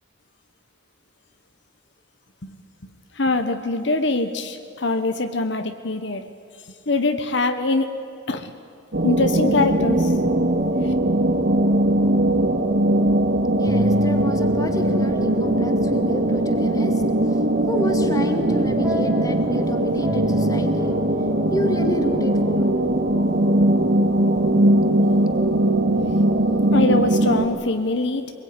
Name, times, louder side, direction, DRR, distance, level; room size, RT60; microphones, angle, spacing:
voice 1, 3.1-6.2 6.9-8.5 9.0-10.1 10.8-10.9 26.7-28.3, left 2 dB, 60° left, 8 dB, 1.2 m, -23 dB
sound 1, 8.9-27.4, right 1 dB, 60° right, 2.1 m, -20 dB
voice 2, 13.6-17.0 17.3-17.4 17.7-20.9 21.5-22.7 24.8-25.4 26.1-26.3 26.5-26.7, equal, 15° left, 5 dB, 2.0 m, -30 dB
sound 2, 13.6-24.2, equal, 15° right, 4.1 m, -36 dB
24.5 x 21.5 x 9.7 m, 2.6 s
head